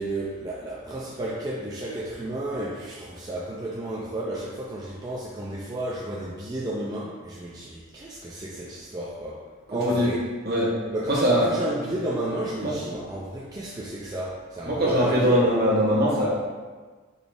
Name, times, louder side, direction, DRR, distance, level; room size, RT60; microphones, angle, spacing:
voice 1, 0.0-10.2 10.9-15.6, right 1 dB, 20° right, -5 dB, 0.4 m, -32 dB
voice 2, 11.1-11.5 12.6-12.7 14.6-16.3, equal, 50° right, -4 dB, 1.1 m, -21 dB
3.9 x 3.5 x 3.6 m, 1.4 s
head